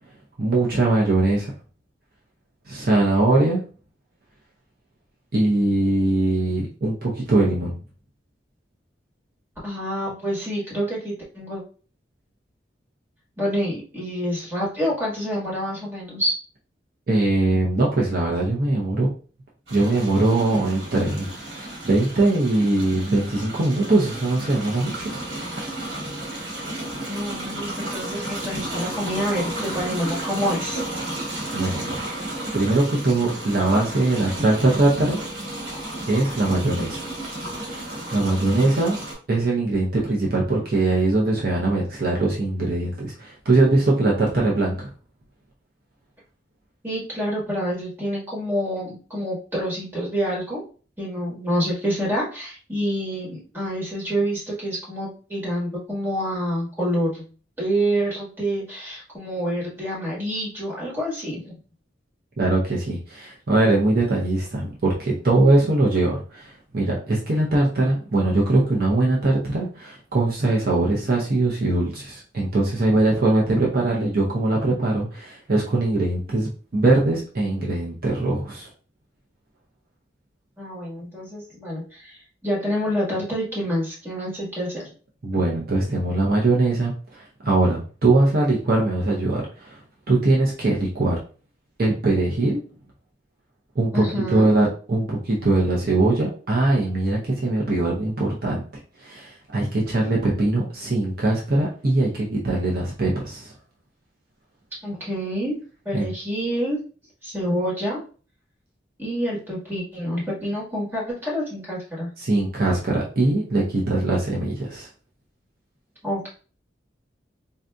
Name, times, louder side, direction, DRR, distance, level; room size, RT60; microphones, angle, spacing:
voice 1, 0.4-1.5 2.7-3.6 5.3-7.8 17.1-19.1 19.7-25.1 31.5-32.0 32.5-35.2 36.1-37.1 37.5-39.0 39.3-44.9 62.4-78.7 85.2-89.8 90.1-91.2 91.8-92.6 93.8-98.6 99.0-103.5 105.9-106.1 112.2-114.9, right 2 dB, 55° right, -3 dB, 0.7 m, -21 dB
voice 2, 9.6-11.6 13.4-16.3 27.1-30.8 46.8-50.6 51.0-57.3 57.6-61.5 80.6-84.8 93.9-94.5 104.8-105.6 105.8-106.8 107.2-108.0 109.0-112.1 116.0-116.3, equal, 10° right, -6 dB, 1.4 m, -27 dB
sound 1, 19.7-39.1, right 1 dB, 90° right, 1.6 m, -33 dB
3.9 x 2.6 x 2.3 m, 0.38 s
head